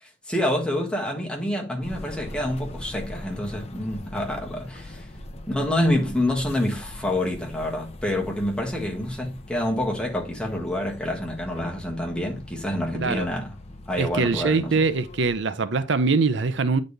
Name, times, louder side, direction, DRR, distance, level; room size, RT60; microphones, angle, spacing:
voice 1, 0.0-5.1 5.5-13.6 13.9-14.8, left 1 dB, 5° left, 1.4 m, -27 dB
sound 1, 1.8-15.4, left 1 dB, 35° left, 0.7 m, -42 dB
voice 2, 14.0-16.8, right 4 dB, 75° right, 0.5 m, -23 dB
9.1 x 4.1 x 3.3 m
head